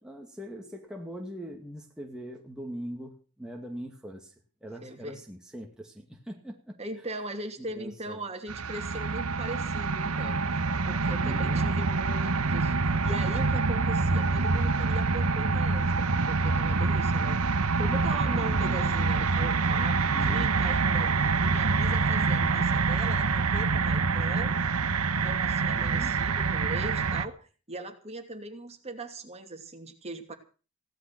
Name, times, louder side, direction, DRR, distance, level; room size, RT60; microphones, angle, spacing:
voice 1, 0.0-4.3 4.6-6.8 7.6-8.2 11.2-11.8 17.8-19.0 20.1-20.5 22.2-22.7 25.7-26.3, equal, 5° right, 0 dB, 2.2 m, -41 dB
voice 2, 4.8-5.2 6.8-17.4 17.8-21.1 21.4-24.6 25.2-27.4 27.7-30.3, right 2 dB, 30° right, 5 dB, 2.7 m, -40 dB
sound 1, 8.5-27.3, right 4 dB, 85° right, 1.1 m, -26 dB
16.5 x 12.0 x 6.0 m, 0.38 s
head